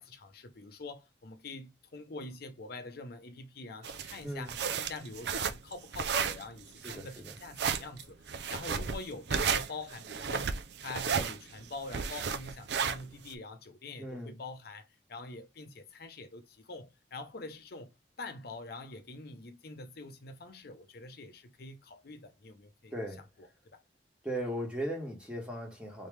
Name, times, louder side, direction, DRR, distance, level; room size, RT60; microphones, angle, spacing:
voice 1, 0.0-23.0 23.4-23.8, left 3 dB, 60° left, 0.7 m, -45 dB
sound 1, 3.8-13.3, right 6 dB, 70° right, 0.5 m, -33 dB
voice 2, 4.2-4.5 6.8-7.3 8.7-8.9 14.0-14.4 22.9-23.2 24.2-26.1, equal, 5° right, 1.4 m, -38 dB
3.7 x 3.1 x 3.3 m
head